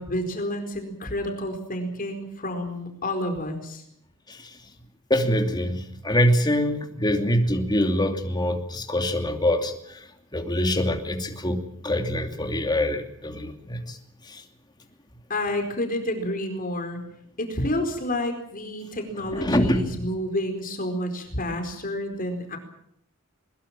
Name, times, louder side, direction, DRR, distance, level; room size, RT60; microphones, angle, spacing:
voice 1, 0.0-3.8 15.3-17.0 17.4-22.6, left 1 dB, 40° left, 6 dB, 4.5 m, -29 dB
voice 2, 5.1-9.7 10.3-14.0 14.3-14.4 19.3-20.0, left 1 dB, 20° left, 5 dB, 2.7 m, -24 dB
22.0 x 21.5 x 7.5 m, 0.72 s
head